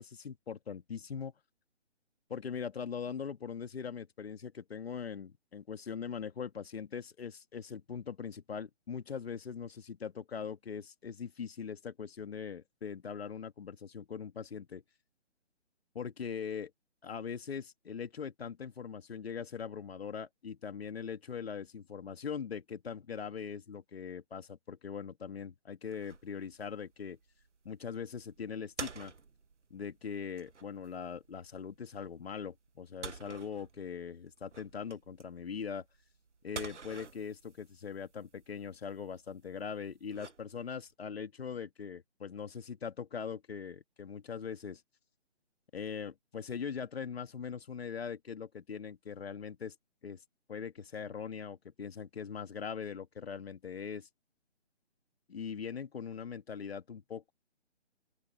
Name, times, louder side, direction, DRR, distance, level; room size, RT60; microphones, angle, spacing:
voice 1, 0.0-1.3 2.3-14.8 15.9-16.7 17.0-27.2 27.6-29.1 29.7-35.8 36.4-44.8 45.7-49.7 50.0-50.2 50.5-54.1 55.3-57.3, left 6 dB, 60° left, 2.0 m, -41 dB
sound 1, 25.8-40.9, right 5 dB, 85° right, 1.6 m, -50 dB
open air
hypercardioid pair, 155°, 35 cm